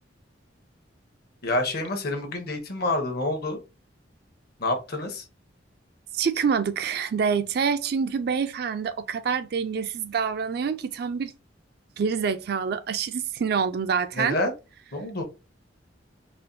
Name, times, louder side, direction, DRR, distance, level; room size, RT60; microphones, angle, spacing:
voice 1, 1.4-3.6 4.6-5.2 14.1-14.5 14.9-15.2, left 2 dB, 55° left, 0.9 m, -27 dB
voice 2, 6.1-11.3 12.0-14.4, right 6 dB, 55° right, 0.4 m, -26 dB
4.2 x 2.2 x 2.6 m
head